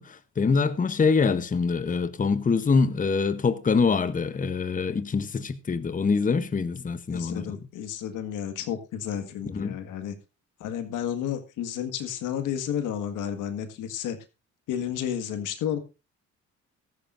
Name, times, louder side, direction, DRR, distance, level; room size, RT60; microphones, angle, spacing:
voice 1, 0.0-7.6 9.4-9.8, left 5 dB, 25° left, 0.9 m, -25 dB
voice 2, 7.1-10.2 10.6-14.2 14.7-15.8, left 9 dB, 85° left, 1.8 m, -31 dB
15.5 x 13.5 x 2.6 m
cardioid pair, 90°, 30 cm